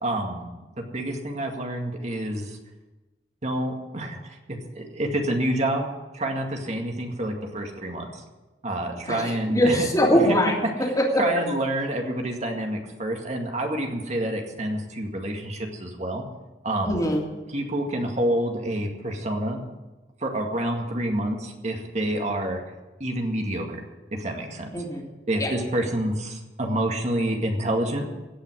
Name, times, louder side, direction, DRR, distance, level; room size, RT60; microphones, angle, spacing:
voice 1, 0.0-0.5 0.8-2.6 3.4-5.9 6.1-8.2 8.6-9.9 11.2-16.2 16.6-17.0 17.5-19.6 20.2-22.6 23.0-23.8 24.1-24.7 25.3-28.1, right 1 dB, 40° right, 2 dB, 2.0 m, -28 dB
voice 2, 9.1-11.2 16.9-17.2 24.7-25.0 25.4-25.5, equal, 20° left, -2 dB, 3.0 m, -22 dB
17.0 x 5.7 x 9.7 m, 1.1 s
head